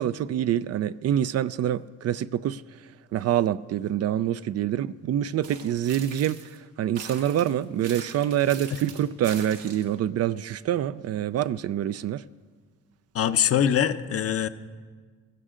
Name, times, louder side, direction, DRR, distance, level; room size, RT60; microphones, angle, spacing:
voice 1, 0.0-2.6 3.1-6.4 6.8-12.2, right 11 dB, 55° right, 0.4 m, -26 dB
sound 1, 5.4-6.6 7.0-10.0, right 6 dB, 80° right, 1.8 m, -42 dB
voice 2, 13.1-14.5, left 9 dB, 50° left, 0.7 m, -23 dB
16.0 x 15.0 x 3.8 m
cardioid pair, 90°, 30 cm